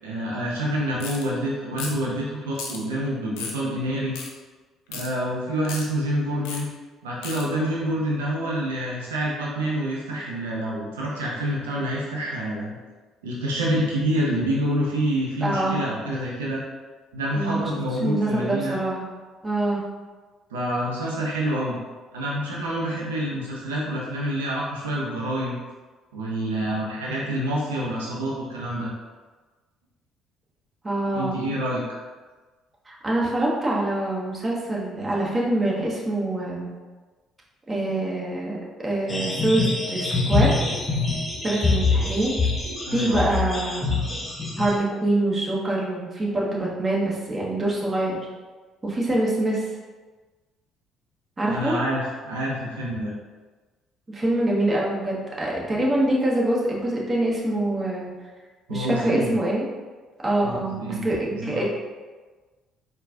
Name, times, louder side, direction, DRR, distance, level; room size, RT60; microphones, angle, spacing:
voice 1, 0.0-4.1 4.9-6.7 7.0-12.8 13.2-16.6 17.1-18.7 20.5-21.8 22.1-25.6 26.1-28.9 31.1-32.0 42.9-43.2 51.5-53.1 58.7-59.3 60.4-61.1 61.4-61.6, equal, 85° right, -5 dB, 0.6 m, -27 dB
sound 1, 1.0-1.2 1.8-2.1 2.6-2.8 3.4-3.6 4.1-4.3 4.9-5.1 5.6-5.8 6.5-6.6 7.2-7.4, left 5 dB, 75° left, 0.6 m, -34 dB
voice 2, 15.4-15.8 17.4-17.7 18.0-19.1 19.4-19.8 30.8-31.4 32.9-36.7 37.7-38.6 38.8-40.5 41.4-42.3 42.9-43.9 44.6-48.2 48.8-49.7 51.4-51.7 54.1-58.1 58.7-59.6 60.2-61.6, right 1 dB, 30° right, -4 dB, 1.2 m, -25 dB
sound 2, 39.1-44.7, left 3 dB, 20° left, 1.4 m, -25 dB
4.6 x 2.3 x 3.7 m, 1.3 s
hypercardioid pair, 50°, 0 cm